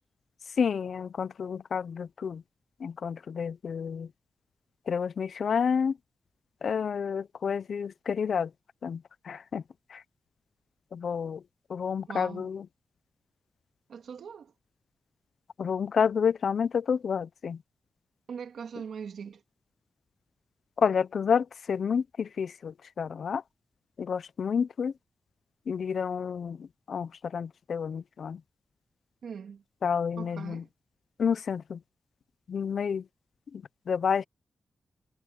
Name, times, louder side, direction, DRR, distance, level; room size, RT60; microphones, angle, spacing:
voice 1, 0.6-2.4 2.8-4.1 4.9-5.9 6.6-8.5 8.8-9.0 9.3-9.6 10.9-11.4 11.7-12.6 15.6-17.6 20.8-22.7 23.0-23.4 24.0-24.9 25.7-26.6 26.9-28.4 29.8-30.6 31.2-31.8 32.5-33.0 33.9-34.2, left 6 dB, 60° left, 0.5 m, -29 dB
voice 2, 12.1-12.5 13.9-14.5 18.3-19.4 29.2-29.6 30.2-30.7, right 6 dB, 75° right, 2.2 m, -41 dB
wide cardioid pair, 160°, 0 cm